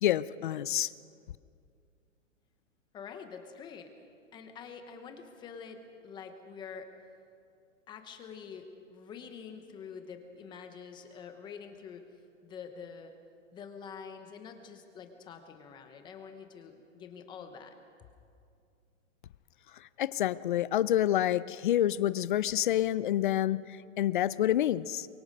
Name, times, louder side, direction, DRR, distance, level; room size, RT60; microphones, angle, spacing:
voice 1, 0.0-0.9 20.0-25.1, left 12 dB, 40° left, 18 dB, 0.5 m, -28 dB
voice 2, 2.9-3.9 4.3-6.9 7.9-12.0 12.4-13.1 13.5-17.7, left 6 dB, 10° left, 6 dB, 0.8 m, -46 dB
23.5 x 23.0 x 5.4 m, 2.3 s
hypercardioid pair, 160°, 39 cm